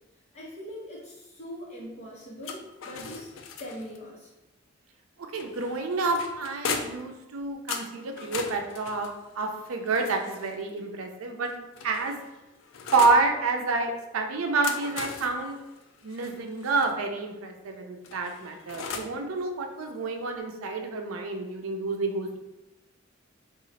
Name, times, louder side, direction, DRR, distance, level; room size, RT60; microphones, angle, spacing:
voice 1, 0.3-3.3 3.6-4.3, equal, 30° left, -5 dB, 1.0 m, -41 dB
sound 1, 2.4-4.0 5.3-7.1 7.7-10.6 11.4-13.3 14.4-16.9 18.0-19.2, left 5 dB, 70° left, 0.4 m, -38 dB
voice 2, 5.2-11.5 11.8-12.2 12.9-15.6 16.0-22.4, right 3 dB, 80° right, 4 dB, 0.5 m, -28 dB
3.0 x 2.4 x 4.0 m, 1.0 s
head